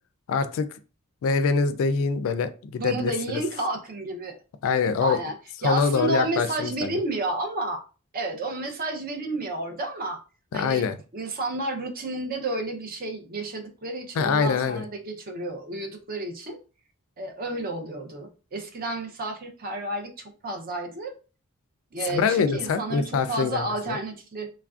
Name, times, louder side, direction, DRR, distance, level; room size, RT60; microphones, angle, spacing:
voice 1, 0.3-0.7 1.2-3.1 4.6-5.2 5.6-7.0 10.5-11.0 14.2-14.9 22.1-24.0, left 5 dB, 65° left, 11 dB, 0.3 m, -24 dB
voice 2, 2.8-4.4 5.0-5.4 5.6-7.8 8.1-10.2 10.5-16.6 17.2-21.1 21.9-24.5, right 2 dB, 40° right, 4 dB, 0.6 m, -31 dB
3.1 x 2.4 x 2.3 m, 0.34 s
head